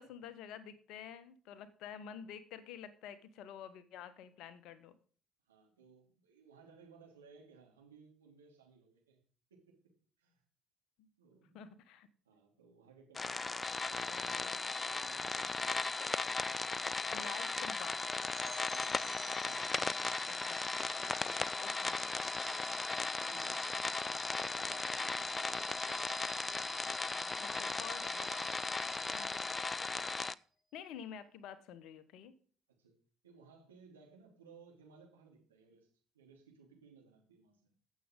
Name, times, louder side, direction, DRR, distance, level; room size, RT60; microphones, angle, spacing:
voice 1, 0.0-4.9 11.0-11.1 11.5-12.1 17.1-18.0 20.3-20.6 21.6-22.0 27.4-28.0 29.1-29.4 30.7-32.3, left 8 dB, 60° left, 14 dB, 1.2 m, -49 dB
voice 2, 5.4-9.2 9.5-9.8 10.2-10.4 11.2-11.6 12.2-13.4 13.7-15.7 17.3-17.6 18.4-20.3 20.7-20.8 22.7-25.4 26.8-29.6 32.8-32.9 33.2-35.9 36.1-37.7, right 5 dB, 80° right, 0 dB, 2.7 m, -61 dB
sound 1, 13.2-30.3, left 3 dB, 25° left, 0.4 m, -37 dB
sound 2, 18.0-30.2, right 2 dB, 25° right, 6.4 m, -52 dB
15.5 x 7.5 x 3.8 m, 0.44 s
figure-of-eight pair, 50°, 0 cm